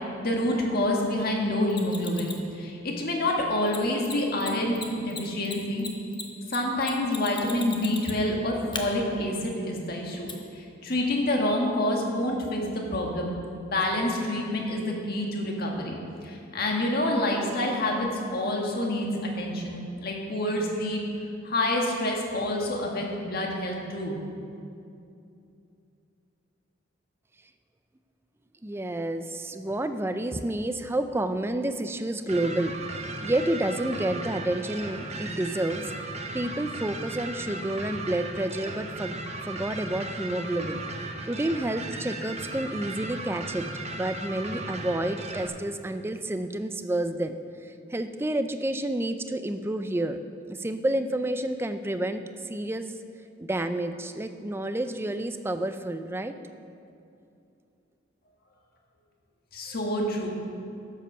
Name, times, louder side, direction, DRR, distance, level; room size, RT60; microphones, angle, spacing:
voice 1, 0.2-5.8 6.5-10.3 10.5-13.4 13.6-21.0 21.4-24.2 59.5-60.3, left 1 dB, 50° left, 0 dB, 1.7 m, -27 dB
Mechanisms, 1.7-2.5 3.7-3.8 4.0-4.1 4.4-4.5 4.7-8.3 8.7-8.8 10.3-10.4, left 5 dB, 25° left, 0.9 m, -37 dB
voice 2, 28.6-35.9 36.3-39.2 39.4-47.4 47.6-50.2 50.5-52.9 53.5-56.3, right 1 dB, 10° right, 9 dB, 0.4 m, -30 dB
sound 1, 32.3-45.5, right 2 dB, 35° right, 0.8 m, -36 dB
12.0 x 7.6 x 5.5 m, 2.6 s
head